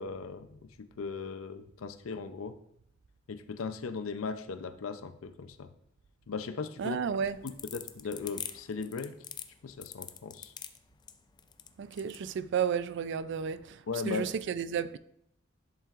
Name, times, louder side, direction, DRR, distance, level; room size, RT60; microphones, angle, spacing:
voice 1, 0.0-2.6 3.3-5.7 6.3-7.1 7.4-9.2 9.6-10.5 13.9-14.3, left 4 dB, 85° left, 0.5 m, -38 dB
voice 2, 6.8-7.4 11.8-15.0, right 7 dB, 60° right, 0.3 m, -32 dB
sound 1, 7.1-12.2, left 8 dB, 20° left, 0.3 m, -43 dB
10.5 x 5.6 x 2.5 m
head